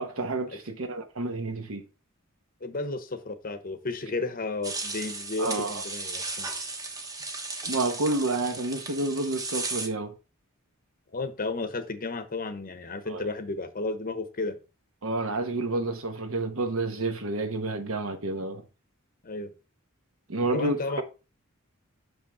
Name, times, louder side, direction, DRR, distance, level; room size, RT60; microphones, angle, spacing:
voice 1, 0.0-1.8 5.4-5.8 7.7-10.1 13.1-13.3 15.0-18.6 20.3-21.0, right 2 dB, 65° right, 1.1 m, -29 dB
voice 2, 2.6-6.5 11.1-14.6 19.2-19.5 20.5-21.0, left 3 dB, 40° left, 0.9 m, -33 dB
sound 1, 4.6-9.9, right 3 dB, 15° right, 0.9 m, -35 dB
6.3 x 5.4 x 3.9 m
head